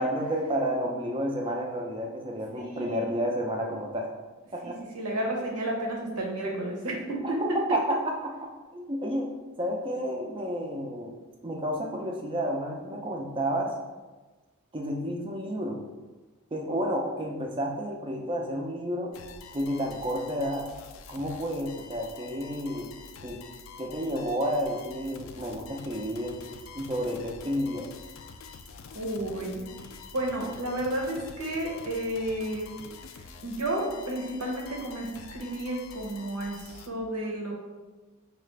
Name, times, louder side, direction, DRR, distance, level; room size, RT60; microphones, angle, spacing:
voice 1, 0.0-4.1 4.5-4.8 7.2-8.3 8.7-9.3 9.6-11.1 11.4-13.7 14.7-15.8 16.5-19.1 19.5-20.7 21.1-22.9 23.2-23.4 23.8-26.4 26.7-27.9, equal, 25° right, 1 dB, 0.4 m, -31 dB
voice 2, 2.6-3.1 4.6-7.6 28.9-29.7 30.1-32.7 33.4-37.5, right 1 dB, 90° right, 0 dB, 0.9 m, -32 dB
sound 1, 19.1-36.9, left 5 dB, 60° left, 0.3 m, -46 dB
4.7 x 2.4 x 3.2 m, 1.2 s
head